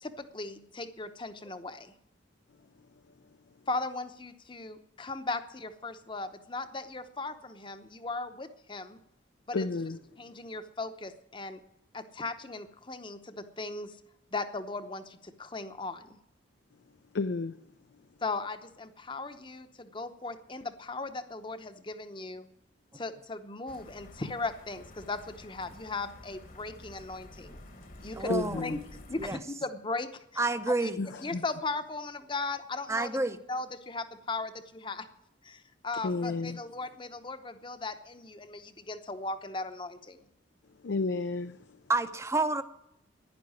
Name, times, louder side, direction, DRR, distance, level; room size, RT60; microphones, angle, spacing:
voice 1, 0.0-1.9 3.7-9.0 9.5-9.7 10.2-11.6 11.9-14.0 14.3-16.2 18.2-22.5 22.9-27.6 28.0-28.3 28.6-28.8 29.1-30.4 30.8-33.2 33.5-35.1 35.4-40.2, left 3 dB, 25° left, 10 dB, 0.8 m, -37 dB
voice 2, 9.5-10.0 17.1-17.6 28.3-28.8 31.0-31.4 36.0-36.6 40.8-41.8, left 3 dB, 70° left, 10 dB, 0.5 m, -32 dB
sound 1, 23.7-29.3, left 1 dB, 45° left, 1.3 m, -50 dB
voice 3, 28.1-28.7 29.2-29.4 30.4-31.0 32.9-33.4 41.9-42.6, right 2 dB, 15° right, 11 dB, 0.7 m, -29 dB
11.5 x 10.5 x 9.6 m, 0.81 s
head